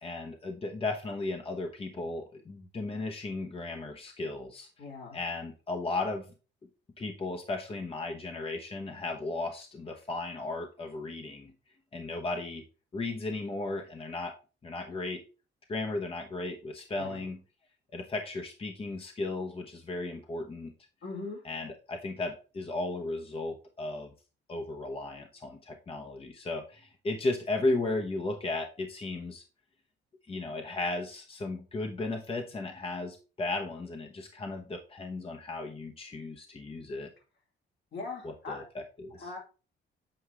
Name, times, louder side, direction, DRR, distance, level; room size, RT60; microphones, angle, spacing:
voice 1, 0.0-4.7 5.1-6.3 7.0-11.5 11.9-12.6 12.9-14.3 14.6-15.2 15.7-17.4 17.9-20.7 21.4-24.1 24.5-29.4 30.3-37.1 38.2-39.4, left 2 dB, 30° left, 3 dB, 1.0 m, -35 dB
voice 2, 4.8-5.2 17.0-17.3 21.0-21.4 37.9-38.6 39.2-39.4, left 3 dB, 65° left, 1 dB, 2.5 m, -40 dB
7.9 x 4.7 x 3.4 m, 0.34 s
cardioid pair, 90°, 20 cm